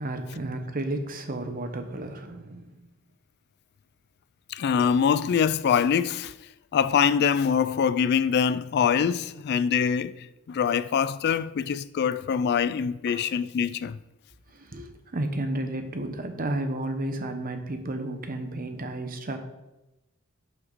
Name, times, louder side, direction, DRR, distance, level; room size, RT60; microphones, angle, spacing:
voice 1, 0.0-2.8 13.1-13.2 14.5-19.4, right 1 dB, 40° right, 1.0 m, -32 dB
voice 2, 4.5-6.3 6.7-14.0, left 7 dB, 50° left, 0.3 m, -24 dB
11.0 x 6.0 x 4.0 m
head